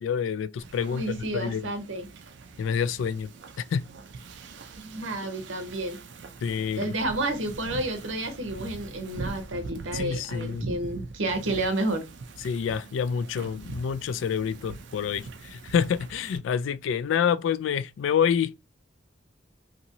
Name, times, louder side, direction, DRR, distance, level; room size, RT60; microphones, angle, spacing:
voice 1, 0.0-1.6 2.6-3.3 3.6-3.9 6.4-6.9 9.9-10.7 12.4-18.6, left 7 dB, 80° left, 0.3 m, -27 dB
Wind / Ocean, 0.6-16.4, right 3 dB, 65° right, 0.4 m, -42 dB
voice 2, 0.9-2.1 4.8-6.0 6.7-12.0, right 2 dB, 85° right, 0.8 m, -30 dB
2.9 x 2.7 x 2.7 m
head